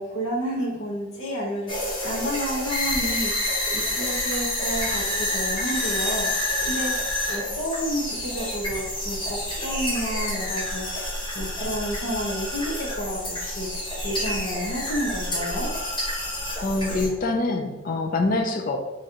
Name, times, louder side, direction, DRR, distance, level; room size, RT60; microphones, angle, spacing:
voice 1, 0.0-6.3 6.7-6.9 7.3-11.1 11.3-15.7, equal, 65° left, -4 dB, 1.0 m, -30 dB
sound 1, 1.7-17.1, left 1 dB, 25° left, 1.3 m, -28 dB
voice 2, 16.6-18.8, left 2 dB, 40° left, 3 dB, 0.5 m, -25 dB
3.7 x 3.1 x 4.5 m, 1.0 s
head